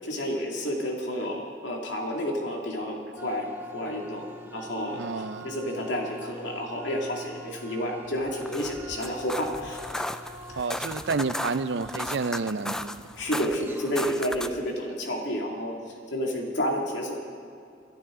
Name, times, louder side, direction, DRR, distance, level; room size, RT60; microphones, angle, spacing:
voice 1, 0.0-3.5 3.7-4.2 4.5-5.0 5.4-10.0 10.5-10.6 13.2-15.7 16.1-17.2, equal, 85° left, 2.3 m, -30 dB
sound 1, 3.2-14.1, left 1 dB, 10° right, 1.0 m, -45 dB
voice 2, 4.9-5.5 10.6-13.0, right 4 dB, 75° right, 0.5 m, -30 dB
sound 2, 8.3-14.7, left 1 dB, 5° left, 0.3 m, -35 dB
24.5 x 12.0 x 3.8 m
head